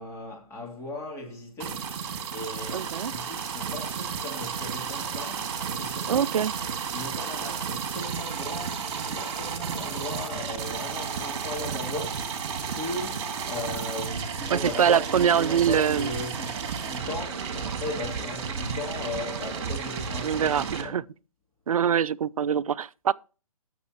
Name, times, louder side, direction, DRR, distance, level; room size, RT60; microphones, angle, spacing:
voice 1, 0.0-2.0 2.3-6.3 6.9-12.3 12.7-21.0, left 2 dB, 15° left, 2.9 m, -37 dB
sound 1, 1.6-20.8, right 6 dB, 45° right, 2.2 m, -33 dB
voice 2, 2.7-3.1 6.1-6.5 14.5-16.1 20.2-21.0 21.7-23.1, right 8 dB, 70° right, 0.4 m, -24 dB
18.0 x 6.6 x 2.9 m
figure-of-eight pair, 135°, 19 cm